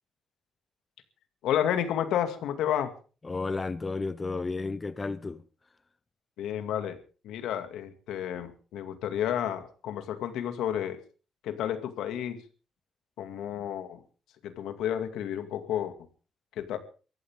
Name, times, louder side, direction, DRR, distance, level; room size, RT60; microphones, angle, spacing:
voice 1, 1.4-2.9 6.4-7.0 7.2-11.0 11.4-12.4 13.2-14.0 14.4-15.9 16.6-16.8, left 10 dB, 85° left, 2.2 m, -31 dB
voice 2, 3.2-5.4, left 3 dB, 25° left, 0.7 m, -32 dB
23.0 x 14.0 x 3.7 m
cardioid pair, 90°, 0 cm